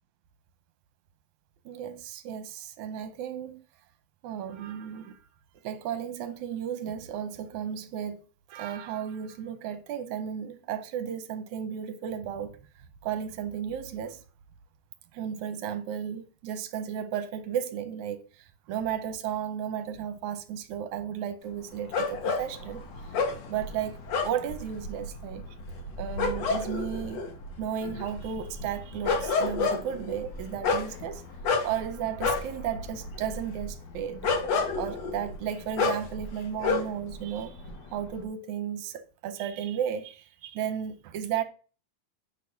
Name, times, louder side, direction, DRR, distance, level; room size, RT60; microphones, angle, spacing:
voice 1, 1.7-3.6 4.2-5.2 5.6-8.2 8.5-12.6 13.0-14.2 15.1-18.2 18.7-22.8 23.5-24.0 24.2-25.4 26.0-27.2 27.6-31.2 31.6-34.3 34.8-37.6 37.9-41.4, right 9 dB, 75° right, 2.1 m, -34 dB
sound 1, 21.9-37.1 37.4-38.2, left 4 dB, 60° left, 2.3 m, -30 dB
8.5 x 4.0 x 5.7 m
omnidirectional pair, 3.6 m